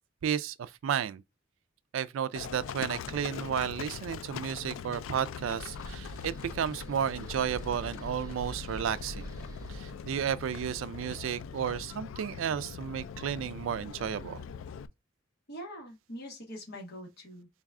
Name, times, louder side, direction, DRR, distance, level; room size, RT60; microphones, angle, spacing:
voice 1, 0.2-1.2 1.9-9.3 9.7-14.4, right 8 dB, 80° right, 0.3 m, -33 dB
Livestock farm animals working animals, 2.4-14.9, left 7 dB, 80° left, 0.3 m, -42 dB
sound 1, 5.5-12.6, right 1 dB, 20° right, 0.7 m, -46 dB
voice 2, 15.5-17.5, equal, 55° left, 1.2 m, -43 dB
3.9 x 2.3 x 3.6 m
head